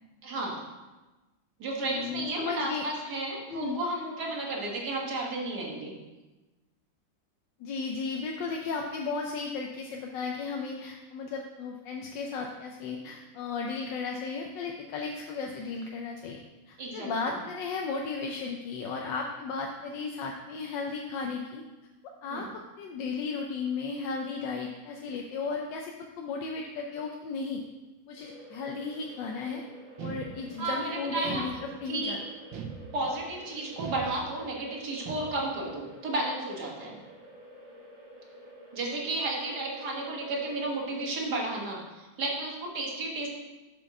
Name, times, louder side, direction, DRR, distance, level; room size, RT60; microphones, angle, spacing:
voice 1, 0.2-0.6 1.6-5.9 16.8-17.3 22.3-22.5 30.6-31.5 31.9-32.2 32.9-37.0 38.7-43.3, right 2 dB, 60° right, -2 dB, 2.2 m, -33 dB
voice 2, 1.8-2.8 3.5-3.8 7.6-16.4 16.7-21.6 22.2-22.5 22.8-27.6 28.1-29.6 30.0-32.2, left 4 dB, 80° left, 1 dB, 1.4 m, -35 dB
sound 1, 28.2-41.2, right 1 dB, 25° right, 2.2 m, -50 dB
sound 2, 30.0-30.8 31.2-32.0 32.5-33.3 33.8-34.6 35.1-35.7, right 6 dB, 90° right, 1.6 m, -41 dB
7.5 x 5.4 x 5.8 m, 1.1 s
omnidirectional pair, 2.0 m